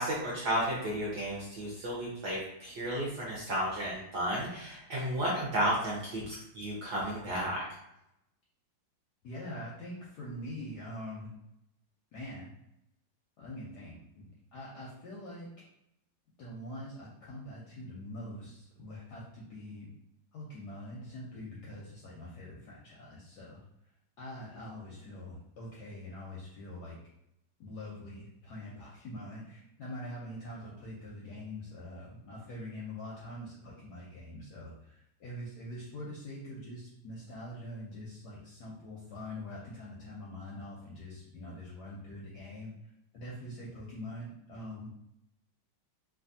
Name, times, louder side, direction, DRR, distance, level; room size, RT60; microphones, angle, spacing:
voice 1, 0.0-7.6, equal, 65° right, -5 dB, 1.0 m, -33 dB
voice 2, 9.2-11.3 12.1-12.5 13.4-14.3 14.5-15.5 16.4-19.9 20.3-23.6 24.2-27.0 27.6-42.7 43.1-44.9, left 1 dB, 75° left, -5 dB, 1.0 m, -44 dB
3.3 x 2.3 x 2.6 m, 0.82 s
omnidirectional pair, 2.3 m